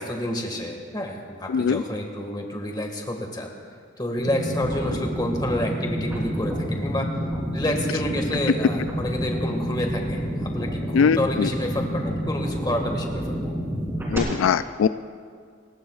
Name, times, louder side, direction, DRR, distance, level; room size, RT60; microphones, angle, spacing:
voice 1, 0.0-3.5 4.0-7.1 7.5-13.4, left 1 dB, 20° left, 2 dB, 1.8 m, -29 dB
sound 1, 4.2-14.2, equal, 15° right, 3.5 m, -29 dB
voice 2, 10.9-11.5 14.1-14.9, left 6 dB, 85° left, 13 dB, 0.3 m, -21 dB
29.0 x 15.5 x 2.4 m, 2.1 s
head